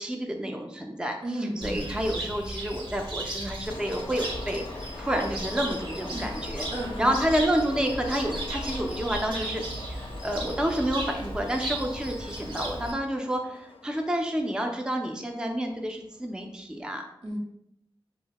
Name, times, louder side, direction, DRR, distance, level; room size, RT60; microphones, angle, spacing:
voice 1, 0.0-1.2 1.6-4.6 5.0-6.7 7.0-17.0, equal, 10° right, 3 dB, 0.4 m, -29 dB
voice 2, 1.2-1.9 6.1-7.1 17.2-17.4, right 1 dB, 80° right, -4 dB, 0.9 m, -34 dB
Cricket, 1.6-12.9, right 1 dB, 60° right, 0.6 m, -36 dB
sound 1, 3.7-16.4, left 3 dB, 70° left, 0.4 m, -44 dB
2.9 x 2.0 x 2.8 m, 0.78 s
wide cardioid pair, 50°, 10 cm